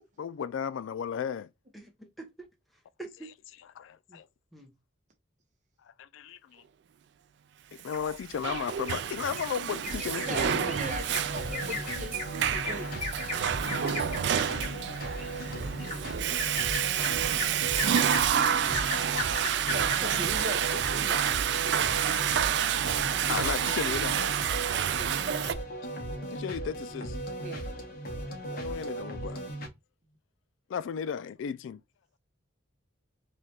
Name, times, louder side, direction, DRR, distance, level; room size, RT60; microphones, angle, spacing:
voice 1, 0.2-1.5 3.8-4.3 5.8-6.6 7.7-10.7 12.6-12.9 13.6-14.9 15.2-15.7 16.1-16.2 17.8-18.6 18.9-19.8 20.1-20.2 21.1-21.3 21.7-21.8 22.1-22.7 23.3-24.3 26.3-27.2 28.5-29.5 30.7-31.8, left 7 dB, 75° left, 0.3 m, -36 dB
voice 2, 1.7-3.3 4.5-4.7 23.0-23.3, right 2 dB, ahead, 0.8 m, -46 dB
Bird vocalization bird call bird song, 7.9-9.0 9.4-9.5 9.8-20.2 20.6-20.7 21.1-21.2, left 2 dB, 30° left, 1.5 m, -37 dB
Water / Toilet flush, 8.0-25.5, right 9 dB, 60° right, 0.3 m, -29 dB
sound 1, 9.9-29.7, right 1 dB, 45° left, 1.0 m, -38 dB
voice 3, 10.3-13.0 19.6-21.9 24.7-25.1 27.4-27.6, right 1 dB, 40° right, 0.8 m, -40 dB
3.2 x 2.3 x 4.2 m
head